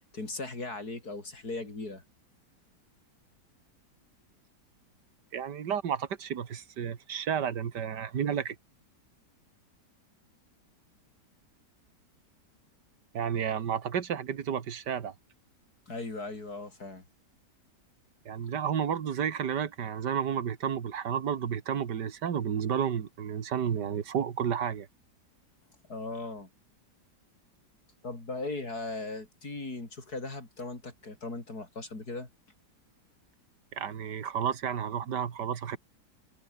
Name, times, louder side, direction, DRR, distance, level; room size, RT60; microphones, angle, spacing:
voice 1, 0.1-2.0 15.9-17.0 25.9-26.5 28.0-32.3, left 3 dB, 60° left, 5.4 m, -38 dB
voice 2, 5.3-8.6 13.1-15.1 18.3-24.9 33.7-35.8, right 8 dB, 75° right, 2.2 m, -31 dB
omnidirectional pair, 1.9 m